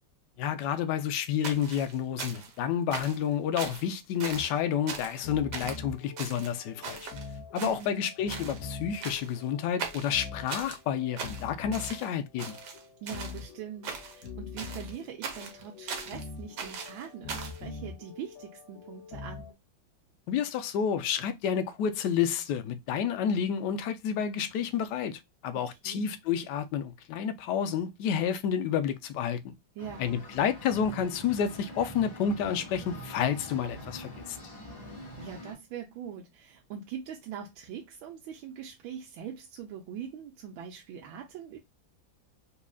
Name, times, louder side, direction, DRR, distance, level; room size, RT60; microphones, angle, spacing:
voice 1, 0.4-7.1 7.5-12.6 20.3-29.4 30.0-34.4, left 8 dB, 75° left, 1.0 m, -30 dB
sound 1, 1.4-2.6 2.9-3.3 3.6-3.9 4.2-4.6 4.9-5.2 5.5-5.8 6.2-7.3 7.6-8.0 8.3-8.6 9.0-9.4 9.8-10.8 11.2-12.1 12.4-13.4 13.8-14.3 14.6-16.2 16.6-17.6, right 5 dB, 65° right, 1.3 m, -39 dB
sound 2, 4.3-19.5, left 4 dB, 50° left, 1.4 m, -44 dB
voice 2, 7.6-8.0 13.0-19.5 25.6-26.0 29.8-30.1 35.2-41.6, right 8 dB, 85° right, 1.4 m, -42 dB
sound 3, 29.8-35.5, equal, 20° left, 1.9 m, -44 dB
4.2 x 2.9 x 2.2 m
omnidirectional pair, 2.2 m